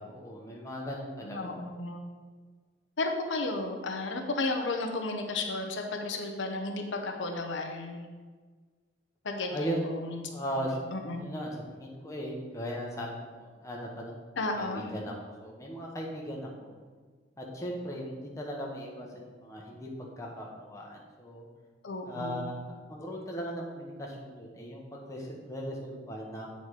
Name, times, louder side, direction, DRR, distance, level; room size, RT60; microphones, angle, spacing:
voice 1, 0.1-1.5 9.5-9.8 10.3-10.8 11.1-14.2 14.6-16.8 17.4-19.9 20.2-21.5 22.1-26.5, equal, 15° left, -2 dB, 1.0 m, -38 dB
voice 2, 1.2-2.0 3.0-8.1 9.2-10.2 10.6-10.7 10.9-11.2 14.4-14.9 21.8-22.5, left 2 dB, 85° left, 3 dB, 0.8 m, -33 dB
8.1 x 4.1 x 4.8 m, 1.5 s
head